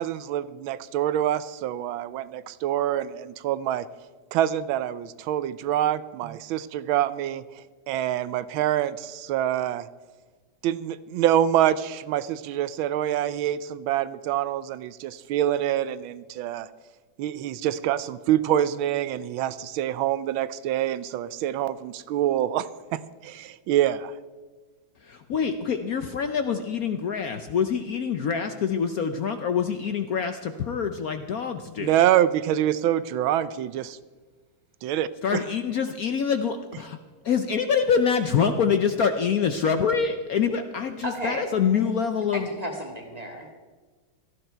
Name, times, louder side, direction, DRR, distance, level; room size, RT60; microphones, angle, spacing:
voice 1, 0.0-3.9 4.3-7.4 7.9-9.9 10.6-16.7 17.2-24.1 31.8-34.0 34.8-35.4, right 11 dB, 75° right, 16 dB, 1.3 m, -26 dB
voice 2, 25.1-31.9 35.2-37.0 37.2-42.5, left 6 dB, 70° left, 8 dB, 0.8 m, -25 dB
voice 3, 41.0-41.5 41.7-41.9 42.3-43.5, equal, 20° right, 1 dB, 1.8 m, -33 dB
17.5 x 14.0 x 4.5 m, 1.4 s
omnidirectional pair, 2.3 m